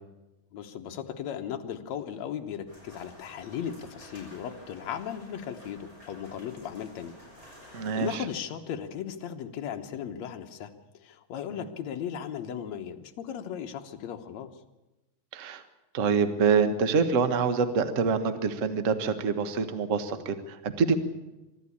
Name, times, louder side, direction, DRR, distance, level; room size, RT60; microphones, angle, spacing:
voice 1, 0.5-7.2 7.7-10.7 11.0-14.5, left 8 dB, 70° left, 6 dB, 2.3 m, -37 dB
sound 1, 2.7-8.1, left 1 dB, 20° right, 6.8 m, -51 dB
voice 2, 7.7-8.2 11.5-11.6 15.3-15.6 15.9-21.0, right 5 dB, 45° right, 10 dB, 1.0 m, -26 dB
24.5 x 13.0 x 8.6 m, 1.0 s
omnidirectional pair, 3.4 m